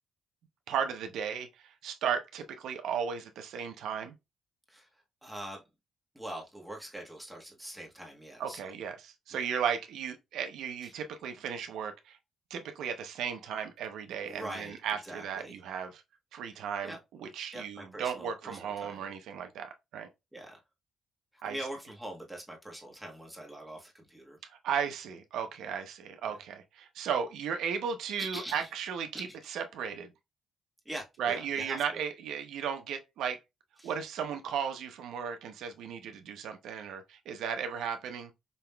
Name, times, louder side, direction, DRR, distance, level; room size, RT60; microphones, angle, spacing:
voice 1, 0.7-4.2 8.4-12.2 12.5-16.0 16.3-20.1 21.4-21.6 24.5-29.1 29.5-30.1 31.2-33.4 33.8-38.3, right 7 dB, 80° right, 0.7 m, -35 dB
voice 2, 4.7-5.6 6.1-8.7 9.3-9.5 10.8-10.9 14.3-15.5 16.5-17.0 17.5-19.0 20.3-20.6 21.3-24.4 28.2-28.7 29.3-29.4 30.8-32.0 33.8-33.9, right 1 dB, 5° right, 1.3 m, -43 dB
5.4 x 2.9 x 2.2 m
cardioid pair, 90°, 0 cm